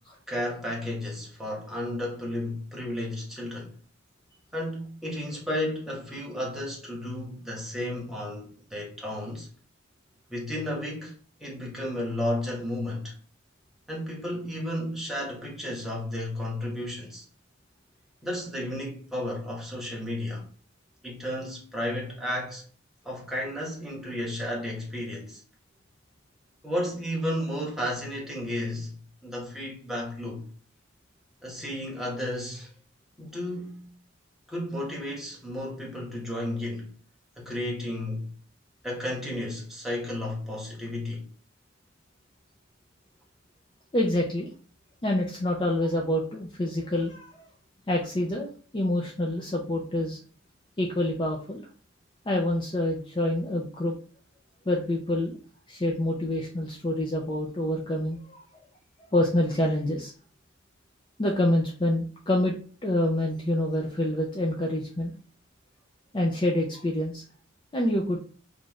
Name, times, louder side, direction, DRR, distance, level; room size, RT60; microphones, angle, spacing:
voice 1, 0.3-3.7 4.5-9.5 10.3-13.1 13.9-17.2 18.2-20.5 21.0-22.6 23.0-25.4 26.6-30.5 31.4-32.7 33.2-33.9 34.5-36.9 37.4-38.3 38.8-41.3, left 1 dB, ahead, 1.1 m, -33 dB
voice 2, 43.9-44.5 45.0-47.4 47.9-50.2 50.8-51.6 52.3-53.9 54.7-55.4 55.7-58.4 59.1-60.1 61.2-62.5 62.8-65.1 66.1-67.2 67.7-68.2, left 1 dB, 25° left, 0.5 m, -27 dB
3.1 x 2.5 x 3.8 m
head